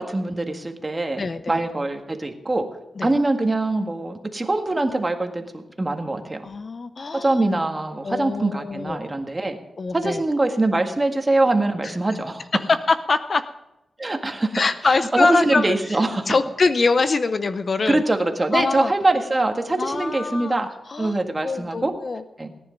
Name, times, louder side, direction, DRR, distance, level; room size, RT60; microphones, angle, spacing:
voice 1, 0.0-1.2 1.5-2.6 3.0-6.4 7.1-9.6 9.9-12.4 14.0-14.6 14.9-16.3 17.9-21.9 22.4-22.5, right 2 dB, 25° right, 4 dB, 1.7 m, -23 dB
voice 2, 1.2-1.6 3.0-3.1 6.4-7.4 8.0-9.1 9.8-10.2 11.8-11.9 12.5-13.4 14.5-15.8 16.3-18.0 18.5-18.9 19.8-22.2, left 4 dB, 45° left, 11 dB, 0.7 m, -23 dB
18.0 x 10.5 x 5.2 m, 0.91 s
cardioid pair, 90°, 0 cm